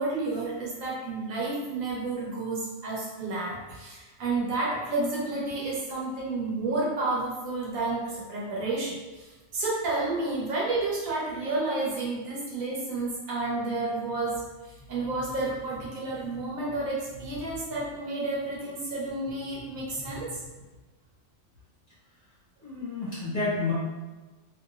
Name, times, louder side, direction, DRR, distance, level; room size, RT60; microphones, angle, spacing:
voice 1, 0.0-20.4, right 2 dB, 80° right, -5 dB, 1.2 m, -31 dB
voice 2, 22.6-23.7, left 3 dB, 40° left, -12 dB, 1.5 m, -30 dB
3.0 x 2.8 x 2.3 m, 1.2 s
omnidirectional pair, 1.4 m